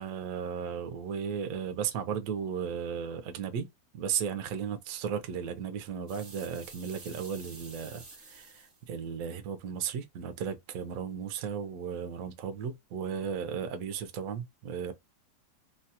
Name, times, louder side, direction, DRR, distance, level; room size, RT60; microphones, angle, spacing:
voice 1, 0.0-3.7 3.9-14.9, right 7 dB, 65° right, 0.8 m, -35 dB
sound 1, 6.1-8.8, right 3 dB, 35° right, 0.9 m, -50 dB
3.1 x 2.3 x 2.7 m
omnidirectional pair, 2.0 m